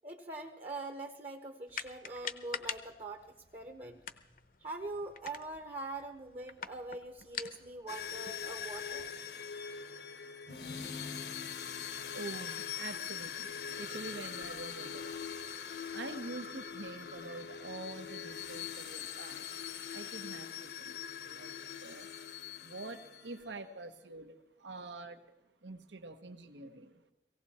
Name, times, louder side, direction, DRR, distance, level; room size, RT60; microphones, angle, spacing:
voice 1, 0.0-3.3 3.5-4.0 4.6-9.1, right 2 dB, 35° right, 5 dB, 0.9 m, -43 dB
sound 1, 1.7-9.1, left 8 dB, 50° left, 0.8 m, -46 dB
sound 2, 7.9-23.5, left 7 dB, 70° left, 1.0 m, -42 dB
voice 2, 12.1-15.1 15.7-19.5 19.9-21.5 21.8-22.1 22.6-25.2 25.6-27.0, right 3 dB, 85° right, 9 dB, 1.1 m, -46 dB
17.5 x 17.5 x 4.3 m, 1.0 s
head